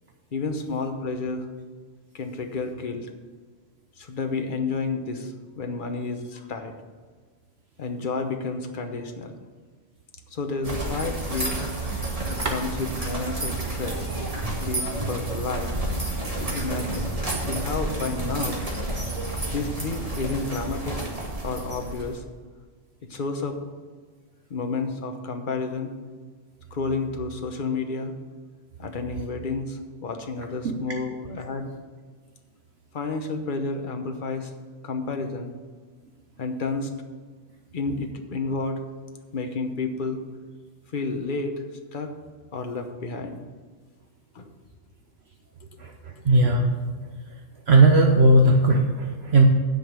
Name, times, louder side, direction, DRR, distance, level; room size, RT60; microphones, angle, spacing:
voice 1, 0.3-1.4 2.1-3.1 4.0-6.7 7.8-9.4 10.3-11.6 12.3-14.1 14.6-15.7 16.4-17.2 17.4-18.6 19.5-21.0 21.4-22.2 23.1-23.6 24.5-25.9 26.7-28.1 28.8-31.7 32.9-34.5 34.8-35.5 36.4-36.9 37.7-38.8 39.3-40.2 40.9-41.6 41.9-42.1 42.5-43.4 44.3-44.5, left 3 dB, 45° left, 5 dB, 1.1 m, -30 dB
sound 1, 10.6-22.2, right 2 dB, 30° right, 1.8 m, -30 dB
voice 2, 46.2-46.7 47.7-49.5, right 2 dB, 60° right, 2 dB, 1.1 m, -17 dB
9.4 x 5.2 x 7.5 m, 1.5 s
omnidirectional pair, 1.3 m